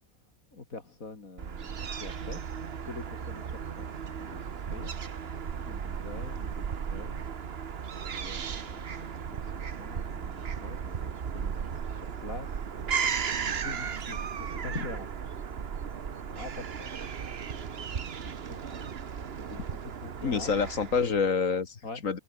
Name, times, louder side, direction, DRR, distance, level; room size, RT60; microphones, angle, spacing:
voice 1, 0.5-4.9 5.6-15.4 16.3-17.1 17.5-20.5 21.8-22.0, left 3 dB, 90° left, 4.1 m, -45 dB
Fowl / Gull seagull, 1.4-21.3, right 7 dB, 50° right, 1.3 m, -35 dB
voice 2, 20.2-22.2, left 5 dB, 70° left, 2.4 m, -27 dB
omnidirectional pair, 1.4 m